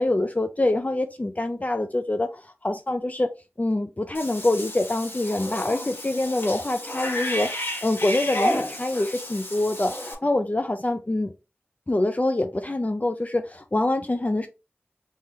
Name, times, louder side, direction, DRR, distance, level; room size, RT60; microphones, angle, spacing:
voice 1, 0.0-3.3 3.6-7.5 7.8-11.3 11.9-14.5, left 2 dB, 40° left, 0.5 m, -25 dB
Cat / Bathtub (filling or washing), 4.1-10.1, left 1 dB, 60° left, 1.3 m, -31 dB
3.8 x 3.1 x 2.9 m
wide cardioid pair, 50°, 4 cm